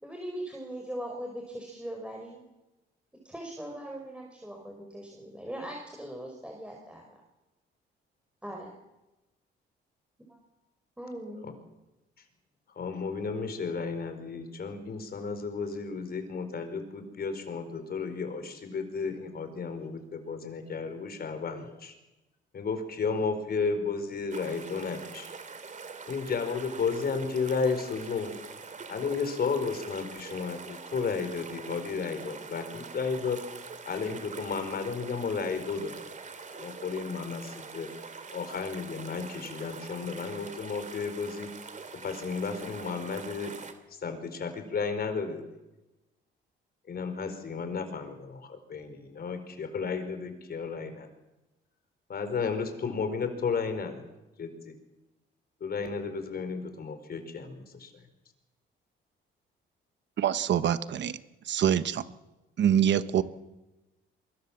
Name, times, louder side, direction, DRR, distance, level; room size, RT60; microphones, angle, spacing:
voice 1, 0.0-2.4 3.1-7.2 8.4-8.7 10.3-10.4 11.0-11.6, right 1 dB, 5° right, 1 dB, 4.8 m, -40 dB
voice 2, 12.8-21.9 22.5-25.3 26.1-28.3 28.9-33.4 33.8-35.9 36.5-37.9 38.3-41.5 42.0-43.5 43.9-45.4 46.9-51.1 52.1-54.0 54.4-54.7 55.6-57.9, left 5 dB, 50° left, 8 dB, 4.7 m, -33 dB
sound 1, 24.3-43.7, right 5 dB, 40° right, 2.9 m, -44 dB
voice 3, 60.2-61.2 61.4-62.0 62.6-63.2, right 9 dB, 65° right, 13 dB, 1.3 m, -25 dB
23.5 x 22.5 x 7.3 m, 1.0 s
cardioid pair, 90°, 20 cm